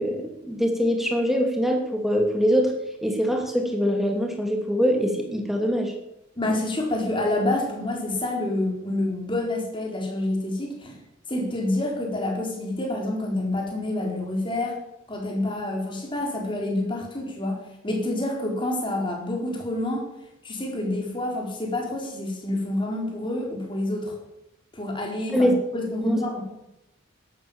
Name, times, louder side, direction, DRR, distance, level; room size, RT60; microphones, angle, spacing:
voice 1, 0.0-2.7 3.0-5.9 25.3-25.5 26.0-26.2, equal, ahead, 2 dB, 2.7 m, -23 dB
voice 2, 6.4-11.0 11.3-14.8 15.1-20.1 20.4-24.2 24.7-26.4, left 1 dB, 25° left, 0 dB, 4.1 m, -28 dB
13.5 x 11.5 x 7.2 m, 0.88 s
head